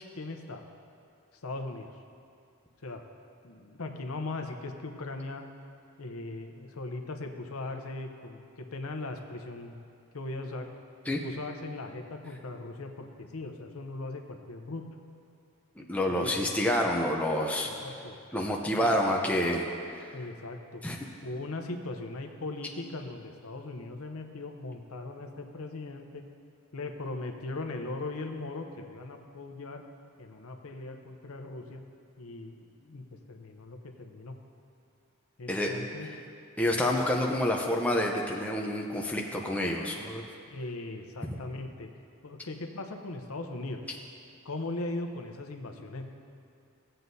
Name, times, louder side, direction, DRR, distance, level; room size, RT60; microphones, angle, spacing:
voice 1, 0.2-0.7 1.4-1.9 2.8-3.0 3.4-5.4 6.0-9.7 10.1-10.7 11.2-14.9 16.1-16.5 17.6-18.2 18.8-18.9 20.1-20.8 21.2-26.2 26.7-29.8 30.2-31.8 32.2-34.3 35.4-36.1 40.4-41.9 42.2-43.8 44.4-46.0, left 2 dB, 80° left, 5 dB, 0.8 m, -39 dB
voice 2, 15.8-17.7 18.3-19.7 20.8-21.0 35.5-35.7 36.6-40.2, left 1 dB, 5° left, -1 dB, 0.6 m, -28 dB
17.0 x 7.7 x 2.7 m, 2.4 s
head